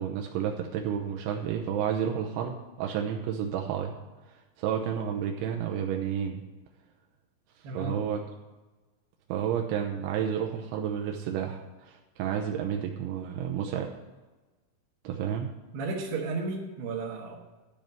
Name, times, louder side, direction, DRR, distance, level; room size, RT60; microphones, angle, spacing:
voice 1, 0.0-3.9 4.3-6.4 7.7-8.2 9.3-13.9 15.0-15.5, right 8 dB, 85° right, 2 dB, 3.1 m, -31 dB
voice 2, 7.6-8.0 15.7-17.3, right 3 dB, 65° right, -4 dB, 3.2 m, -33 dB
12.5 x 5.2 x 8.9 m, 1.2 s
omnidirectional pair, 5.4 m